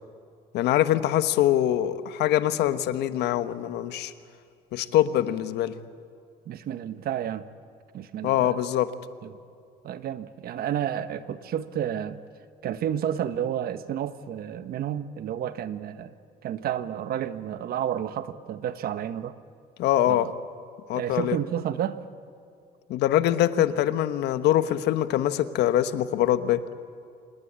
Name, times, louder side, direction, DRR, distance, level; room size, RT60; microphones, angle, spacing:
voice 1, 0.5-4.1 4.7-5.8 8.2-8.9 19.8-20.3 20.9-21.4 22.9-26.6, left 12 dB, 80° left, 1.2 m, -23 dB
voice 2, 6.5-7.4 7.9-8.6 9.2-9.3 9.8-12.2 12.6-16.1 16.4-19.4 20.1-20.3 20.9-22.0, right 10 dB, 65° right, 1.3 m, -31 dB
27.0 x 20.0 x 8.7 m
cardioid pair, 110°, 17 cm